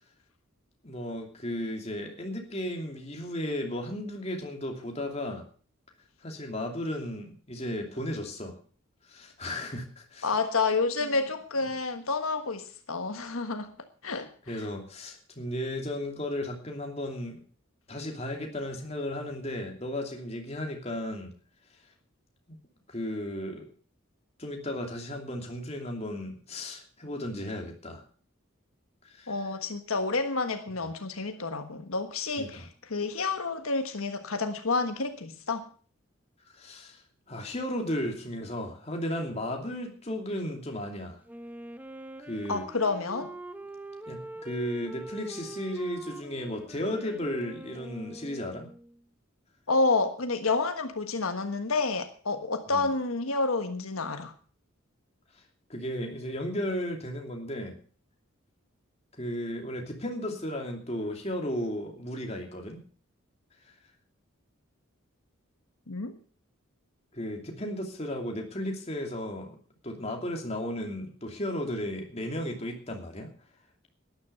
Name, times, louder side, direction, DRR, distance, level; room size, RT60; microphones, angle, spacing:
voice 1, 0.8-5.4 6.2-8.5 9.1-10.3 11.0-11.1 14.1-14.2 14.5-17.4 17.9-21.3 22.5-22.6 22.9-23.7 24.4-28.0 29.0-29.3 32.4-32.7 36.5-37.0 37.3-41.2 42.3-42.6 44.1-48.7 52.7-52.9 55.7-57.8 59.2-62.8 67.1-69.6 69.8-73.3, left 1 dB, 30° left, 2 dB, 2.8 m, -34 dB
voice 2, 10.2-13.7 14.0-14.6 29.3-35.7 42.5-43.3 49.7-54.3 65.9-66.2, left 3 dB, 85° left, 7 dB, 1.4 m, -29 dB
Wind instrument woodwind instrument, 41.3-49.0, right 1 dB, 10° right, 0.8 m, -44 dB
12.5 x 10.5 x 6.9 m, 0.42 s
head